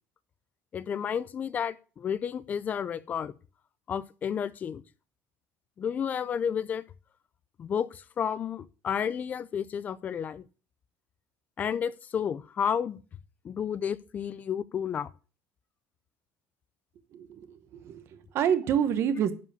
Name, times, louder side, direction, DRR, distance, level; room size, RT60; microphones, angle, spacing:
voice 1, 0.7-3.3 3.9-4.8 5.8-6.8 7.6-10.4 11.6-13.0 13.4-15.1, left 8 dB, 25° left, 0.5 m, -31 dB
voice 2, 17.8-19.3, right 8 dB, 45° right, 1.2 m, -27 dB
11.0 x 4.9 x 6.8 m
cardioid pair, 175°, 6 cm